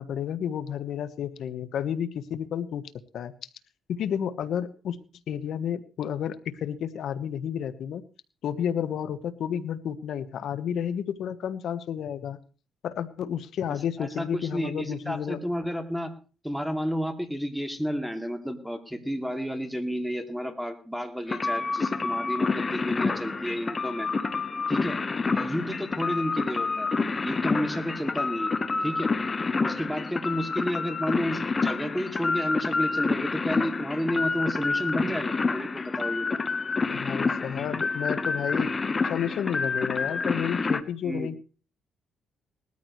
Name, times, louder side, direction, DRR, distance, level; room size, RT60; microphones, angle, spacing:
voice 1, 0.0-3.3 3.9-5.0 5.3-8.0 8.4-12.4 12.8-15.4 36.9-38.8 39.0-41.4, left 9 dB, 70° left, 12 dB, 1.2 m, -31 dB
voice 2, 14.0-16.1 16.4-24.1 24.7-25.0 25.3-26.9 27.2-28.5 28.8-29.1 29.6-36.4 41.0-41.3, equal, ahead, 5 dB, 2.5 m, -31 dB
sound 1, 21.3-40.8, left 4 dB, 30° left, 1.0 m, -28 dB
19.5 x 13.5 x 3.2 m, 0.37 s
cardioid pair, 90°, 0 cm